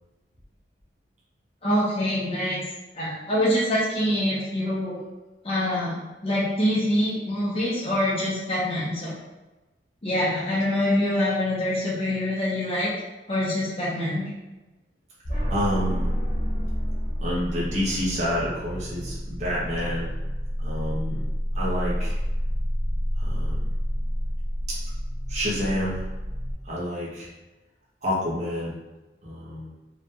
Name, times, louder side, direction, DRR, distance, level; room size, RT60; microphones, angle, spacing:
voice 1, 1.6-2.6 2.9-5.0 5.4-9.2 10.0-12.9 13.3-14.3, left 1 dB, 35° left, -8 dB, 1.1 m, -25 dB
sound 1, 15.2-26.5, equal, 55° left, 1.0 m, -29 dB
voice 2, 15.5-16.0 17.2-20.1 20.6-21.2 21.5-22.1 23.2-23.6 25.3-26.0 26.7-27.3 28.0-28.7 29.2-29.7, equal, 40° right, -7 dB, 1.2 m, -28 dB
4.8 x 3.5 x 2.5 m, 1.1 s
head